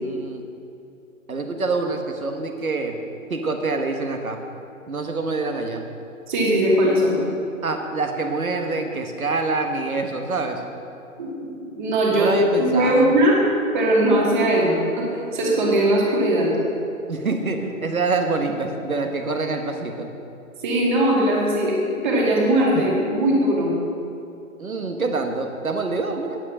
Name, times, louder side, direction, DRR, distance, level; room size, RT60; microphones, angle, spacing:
voice 1, 0.0-0.5 1.3-3.0 3.3-4.4 4.9-5.8 7.6-10.6 12.1-13.1 17.1-20.1 22.7-23.0 24.6-26.4, right 3 dB, 80° right, 5 dB, 1.5 m, -26 dB
voice 2, 6.3-7.2 11.2-12.3 12.6-13.4 13.7-15.1 15.3-16.5 20.6-23.7, right 1 dB, 35° right, -3 dB, 2.4 m, -20 dB
9.7 x 7.6 x 6.3 m, 2.6 s
figure-of-eight pair, 140°, 42 cm